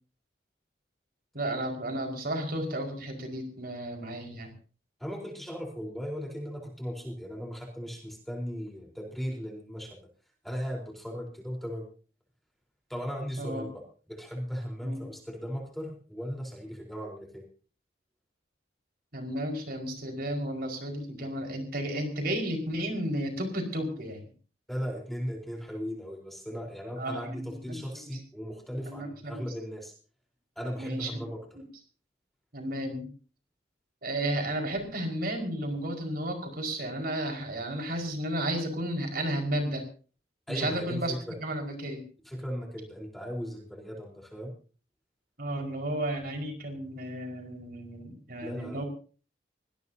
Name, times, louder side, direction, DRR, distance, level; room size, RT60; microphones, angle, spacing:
voice 1, 1.3-4.5 13.4-13.6 14.8-15.1 19.1-24.2 27.0-27.8 28.1-28.2 28.9-29.4 30.8-31.2 31.6-31.7 32.5-33.1 34.0-39.8 40.5-41.1 41.4-42.0 45.4-48.8, right 1 dB, 55° right, 2 dB, 5.3 m, -33 dB
voice 2, 5.0-10.1 10.4-11.9 12.9-13.8 14.1-17.4 24.7-29.9 30.6-31.4 40.5-41.3 42.2-44.5 48.4-48.8, equal, ahead, 0 dB, 4.2 m, -37 dB
24.0 x 18.5 x 2.9 m, 0.40 s
head